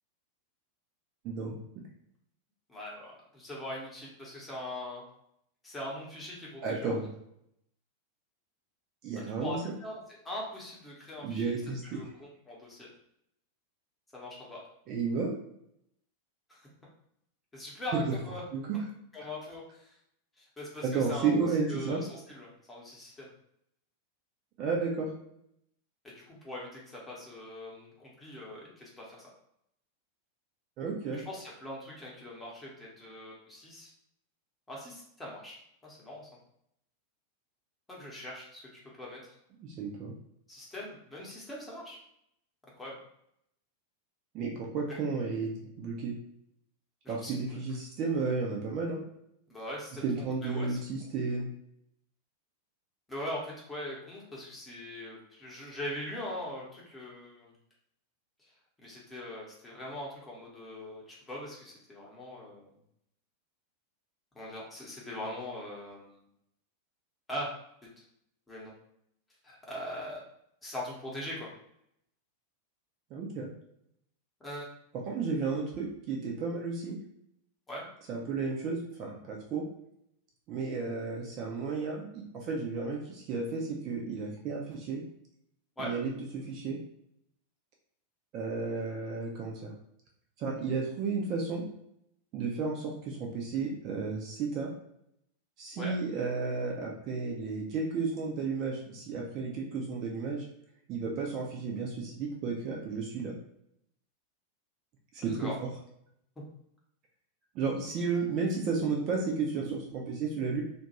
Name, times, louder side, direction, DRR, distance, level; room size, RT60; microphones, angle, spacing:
voice 1, 2.7-5.0 5.6-6.9 9.3-10.0 10.2-11.5 11.8-12.9 14.1-14.6 16.5-16.7 17.5-18.4 19.1-20.0 20.4-21.3 21.6-23.3 26.1-29.3 31.1-33.9 34.7-35.6 35.8-36.3 37.9-38.7 39.0-39.4 40.5-42.0 42.7-43.0 44.9-45.0 47.0-47.6 49.5-50.8 53.1-57.5 58.8-62.7 64.3-66.2 67.3-67.5 68.0-68.1 68.5-68.7 69.4-70.2 70.6-71.5 74.4-74.7 77.7-77.9 85.8-85.9 95.8-96.0 105.4-105.6, left 1 dB, 10° left, -4 dB, 0.9 m, -41 dB
voice 2, 6.6-7.1 9.0-9.6 11.2-12.0 14.9-15.3 18.1-18.2 18.5-18.8 20.8-22.0 24.6-25.1 30.8-31.2 39.6-40.1 44.3-46.1 47.1-49.0 50.0-51.5 73.1-73.5 75.1-77.0 78.1-79.6 80.5-85.0 85.8-86.8 88.3-89.7 90.4-91.6 92.3-94.7 95.6-100.5 100.9-103.3 105.1-105.7 107.5-110.6, right 4 dB, 40° right, 0 dB, 0.5 m, -33 dB
2.3 x 2.2 x 2.9 m, 0.74 s
figure-of-eight pair, 90°, 0 cm